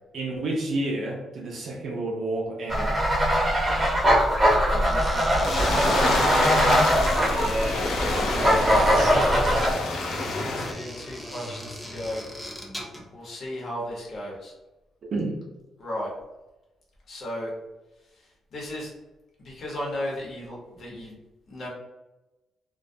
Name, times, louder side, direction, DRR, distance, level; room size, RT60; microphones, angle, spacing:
voice 1, 0.1-3.0 7.3-9.1 15.1-15.4, right 2 dB, 55° right, -1 dB, 0.4 m, -30 dB
sound 1, 2.7-9.7, equal, 20° right, 0.8 m, -21 dB
voice 2, 4.7-6.2 9.4-9.8 10.3-12.2 13.1-14.5 15.8-16.1 17.1-17.5 18.2-18.9 19.4-21.2 21.5-21.7, left 1 dB, 50° left, -4 dB, 0.8 m, -35 dB
sound 2, 4.9-13.1, equal, 5° left, 0.4 m, -39 dB
sound 3, 5.4-10.7, left 3 dB, 85° left, 0.4 m, -28 dB
2.2 x 2.1 x 2.6 m, 1.0 s
cardioid pair, 140°, 0 cm